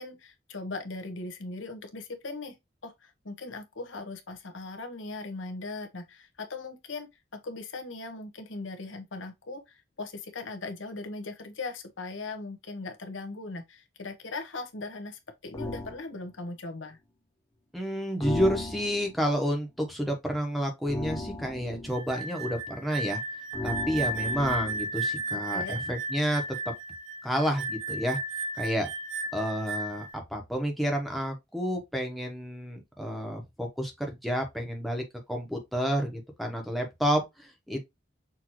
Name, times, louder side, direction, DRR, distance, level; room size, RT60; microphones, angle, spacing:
voice 1, 0.0-2.5 2.8-17.0 25.3-25.8, left 3 dB, 85° left, 1.0 m, -39 dB
sound 1, 15.5-16.0 18.2-19.1 20.9-22.0 23.5-24.9, left 1 dB, 15° left, 0.8 m, -35 dB
voice 2, 17.7-23.2 23.6-26.4 27.2-28.2 28.6-28.9 29.3-35.0 35.3-37.9, equal, ahead, 1.1 m, -30 dB
sound 2, 21.9-30.1, right 2 dB, 85° right, 0.8 m, -34 dB
6.1 x 2.8 x 3.0 m
head